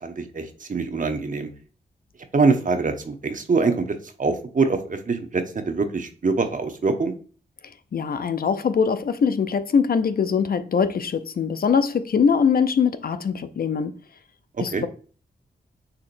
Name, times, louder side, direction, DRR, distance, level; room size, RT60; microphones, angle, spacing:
voice 1, 0.0-1.5 2.3-3.8 4.2-7.1 14.7-14.8, right 4 dB, 50° right, 0.9 m, -24 dB
voice 2, 7.9-13.9 14.6-14.9, left 6 dB, 55° left, 0.5 m, -22 dB
6.7 x 2.8 x 2.6 m
cardioid pair, 50°, 18 cm